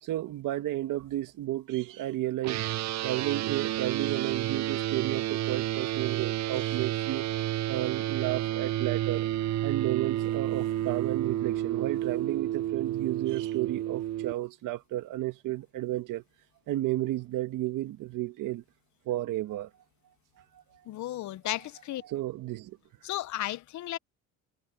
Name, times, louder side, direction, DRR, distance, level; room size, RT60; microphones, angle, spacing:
voice 1, 0.0-2.6 3.0-7.3 7.7-9.3 9.6-16.2 16.7-18.6 19.1-19.7 20.5-20.6 21.5-21.7 22.0-22.8, right 15 dB, 70° right, 2.0 m, -32 dB
sound 1, 2.4-14.3, right 13 dB, 55° right, 0.7 m, -30 dB
voice 2, 20.9-22.0 23.0-24.0, left 14 dB, 60° left, 0.8 m, -34 dB
supercardioid pair, 85°, 33 cm